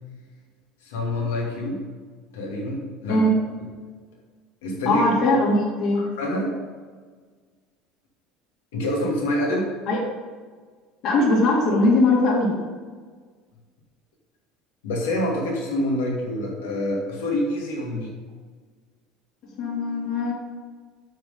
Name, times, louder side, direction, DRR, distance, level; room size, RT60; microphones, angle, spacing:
voice 1, 0.8-1.8 2.3-3.2 4.6-5.0 6.0-6.5 8.7-9.7 14.8-18.1, left 1 dB, 65° left, -1 dB, 2.5 m, -26 dB
voice 2, 4.8-6.1 9.9-10.0 11.0-12.6 17.9-18.0 19.6-20.3, left 2 dB, 50° left, -2 dB, 2.9 m, -20 dB
9.2 x 7.6 x 5.2 m, 1.5 s
figure-of-eight pair, 65°, 0 cm